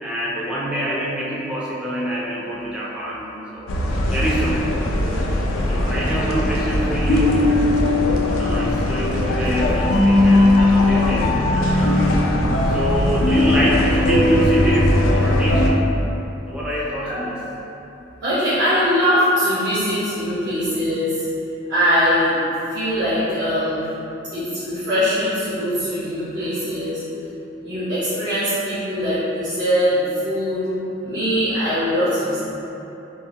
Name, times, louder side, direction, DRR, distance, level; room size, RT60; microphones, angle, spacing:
voice 1, 0.0-3.7 4.1-4.7 5.7-7.7 8.4-12.2 12.7-15.9 16.5-17.4, right 1 dB, 5° right, -7 dB, 0.3 m, -25 dB
sound 1, 3.7-15.7, left 1 dB, 85° left, 0.3 m, -18 dB
voice 2, 18.2-21.3 21.7-22.3 22.7-23.8 24.3-27.0 27.6-30.6 31.0-32.4, equal, 65° right, -14 dB, 0.9 m, -21 dB
3.6 x 2.0 x 2.7 m, 3.0 s
head